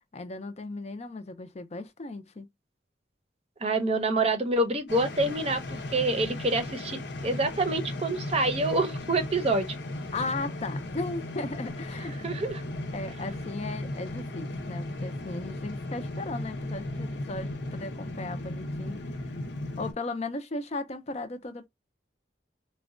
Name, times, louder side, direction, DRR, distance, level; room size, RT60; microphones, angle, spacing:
voice 1, 0.1-2.5 10.1-12.2 12.9-19.2 19.8-21.7, left 2 dB, 40° left, 0.5 m, -36 dB
voice 2, 3.6-9.7 12.2-12.6, right 2 dB, 35° right, 0.6 m, -27 dB
sound 1, 4.9-19.9, left 1 dB, 80° left, 0.8 m, -36 dB
3.9 x 2.2 x 2.4 m
head